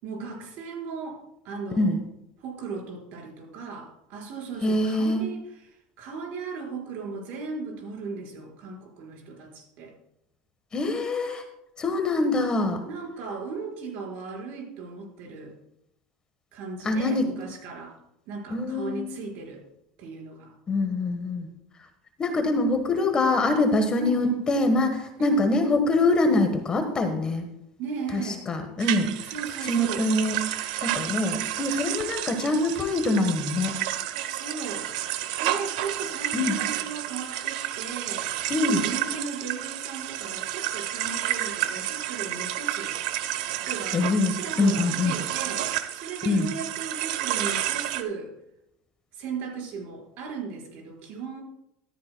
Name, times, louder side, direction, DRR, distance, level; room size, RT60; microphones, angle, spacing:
voice 1, 0.0-2.0 2.4-9.9 12.8-15.5 16.5-17.9 18.3-19.6 20.0-20.5 24.0-24.4 25.2-25.5 27.8-28.4 29.3-30.1 34.3-34.9 35.4-38.3 38.6-43.0 43.5-44.0 44.3-48.3 49.1-51.4, right 5 dB, 60° right, -1 dB, 4.7 m, -36 dB
voice 2, 4.6-5.2 10.7-11.4 11.8-12.8 16.8-17.3 18.5-19.1 20.7-21.5 22.2-27.5 28.1-29.3 29.7-30.4 30.8-33.7 36.3-36.6 38.5-38.8 43.9-45.2 46.2-46.5, left 2 dB, 20° left, 6 dB, 1.3 m, -24 dB
sound 1, 28.8-48.0, right 13 dB, 85° right, 0.8 m, -31 dB
14.0 x 13.0 x 2.2 m, 0.80 s
cardioid pair, 140°, 4 cm